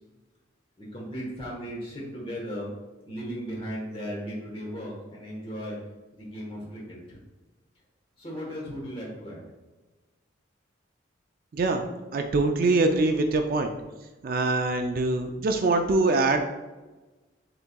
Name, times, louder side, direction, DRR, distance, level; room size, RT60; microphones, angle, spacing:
voice 1, 0.8-2.7 3.1-5.8 6.1-7.2 8.2-9.4, equal, 25° left, -3 dB, 1.2 m, -36 dB
voice 2, 11.5-11.8 12.1-13.7 14.2-16.4, right 2 dB, 45° right, 5 dB, 0.3 m, -23 dB
6.7 x 3.5 x 2.3 m, 1.2 s
head